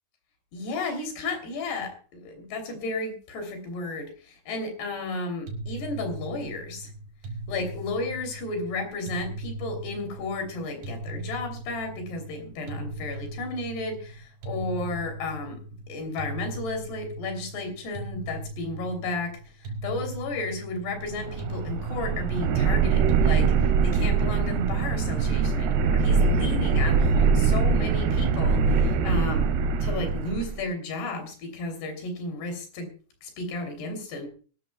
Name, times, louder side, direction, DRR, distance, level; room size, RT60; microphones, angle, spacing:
voice 1, 0.5-6.9 7.5-19.4 19.8-32.9 33.2-34.3, left 2 dB, 75° left, 6 dB, 5.2 m, -33 dB
sound 1, 5.5-24.8, right 2 dB, 60° right, 3.8 m, -39 dB
sound 2, 21.0-30.6, right 5 dB, 85° right, 3.1 m, -23 dB
22.5 x 12.5 x 2.3 m, 0.39 s
omnidirectional pair, 4.8 m